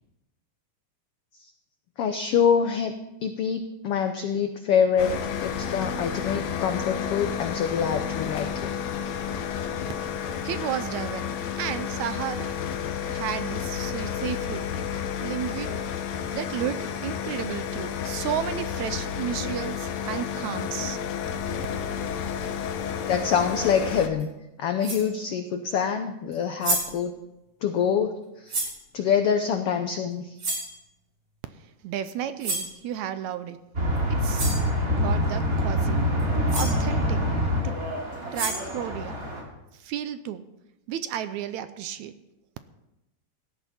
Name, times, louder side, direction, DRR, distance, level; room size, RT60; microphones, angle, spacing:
voice 1, 2.0-2.9 3.2-5.1 5.4-8.7 23.1-24.3 24.6-27.1 27.6-28.1 28.4-28.6 28.9-30.4, left 7 dB, 80° left, 7 dB, 1.3 m, -25 dB
sound 1, 5.0-24.1, left 8 dB, 65° left, 2.1 m, -31 dB
voice 2, 10.4-12.5 13.0-14.7 15.2-15.8 16.3-21.0 31.8-33.6 34.1-34.5 34.9-36.0 36.5-37.2 37.6-37.8 38.3-39.2 39.7-40.5 40.9-42.2, right 10 dB, 75° right, 11 dB, 1.8 m, -33 dB
sound 2, 24.2-24.3 24.8-25.1 26.3-26.4 26.6-27.0 28.5-28.8 30.4-30.7 32.4-32.7 34.0-34.1 34.3-34.7 36.2-36.3 36.5-36.8 38.1-38.8, right 2 dB, 50° right, 4.5 m, -30 dB
sound 3, 33.7-39.4, equal, 25° right, 2.9 m, -25 dB
17.5 x 12.5 x 4.3 m, 0.95 s
omnidirectional pair, 3.6 m